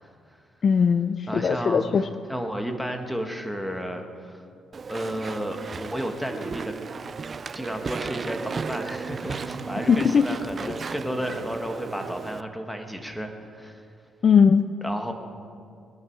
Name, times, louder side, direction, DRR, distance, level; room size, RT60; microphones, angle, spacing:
voice 1, 0.0-0.4 1.3-4.4 4.9-6.7 7.5-13.9 14.8-15.1, equal, ahead, 4 dB, 1.6 m, -32 dB
voice 2, 0.6-2.0 9.9-10.3 14.2-14.7, left 6 dB, 50° left, 12 dB, 0.4 m, -19 dB
Walk footsteps / Chatter / Squeak, 4.7-12.4, right 5 dB, 40° right, 0.4 m, -35 dB
20.5 x 10.5 x 4.7 m, 2.3 s
cardioid pair, 90°, 0 cm